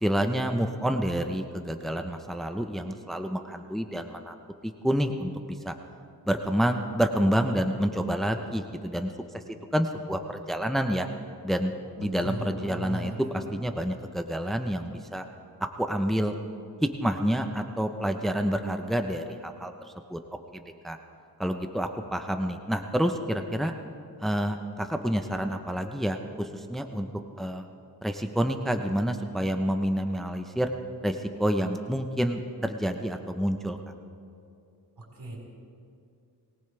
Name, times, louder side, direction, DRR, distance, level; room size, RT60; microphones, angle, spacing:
voice 1, 0.0-4.3 4.6-5.3 5.6-5.7 6.3-9.4 9.7-11.1 11.4-11.7 12.0-13.1 13.5-15.2 15.8-16.3 16.8-19.7 20.1-20.2 20.5-21.0 21.4-23.7 24.2-27.1 27.4-27.7 28.0-30.7 31.0-33.8, equal, ahead, 6 dB, 0.9 m, -28 dB
voice 2, 12.0-13.5 35.0-35.4, right 1 dB, 75° right, -2 dB, 5.0 m, -37 dB
22.0 x 19.0 x 3.4 m, 2.5 s
cardioid pair, 60°, 40 cm